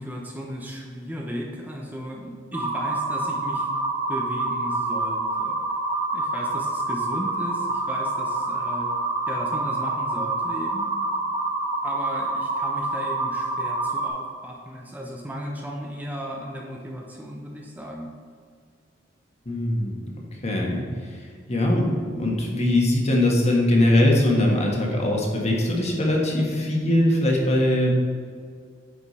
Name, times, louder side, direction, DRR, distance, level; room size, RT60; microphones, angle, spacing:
voice 1, 0.0-3.7 4.1-5.6 6.1-8.9 9.3-10.9 11.8-18.1, equal, 10° right, -1 dB, 0.8 m, -35 dB
sound 1, 2.5-14.1, right 2 dB, 25° right, 1.4 m, -27 dB
voice 2, 19.4-20.0 20.4-21.2 21.5-27.9, left 1 dB, 40° left, -1 dB, 1.5 m, -21 dB
9.9 x 5.1 x 4.2 m, 2.1 s
head